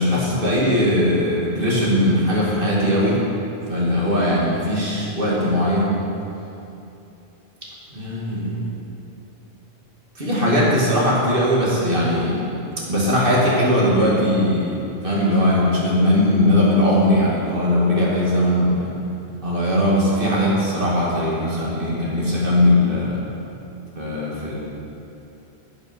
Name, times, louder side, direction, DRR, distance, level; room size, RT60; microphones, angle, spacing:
voice 1, 0.0-3.2 3.7-6.0 7.9-8.7 10.2-12.4 12.9-14.8 15.0-18.9 19.4-23.2 24.0-24.6, left 1 dB, 60° right, -6 dB, 2.4 m, -19 dB
9.0 x 8.4 x 5.5 m, 2.8 s
omnidirectional pair, 1.1 m